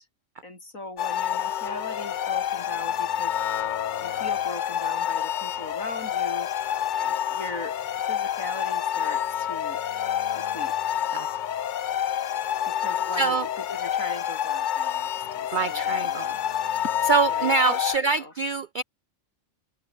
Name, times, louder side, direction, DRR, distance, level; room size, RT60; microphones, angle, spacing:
voice 1, 0.4-3.3 4.0-6.5 7.3-9.8 10.3-11.0 12.6-16.2 16.8-17.0 17.3-18.3, left 2 dB, 85° left, 6.8 m, -39 dB
sound 1, 1.0-18.0, left 10 dB, 60° left, 0.5 m, -28 dB
voice 2, 13.2-13.5 15.5-16.4 17.1-18.8, right 4 dB, 70° right, 0.4 m, -25 dB
omnidirectional pair, 1.4 m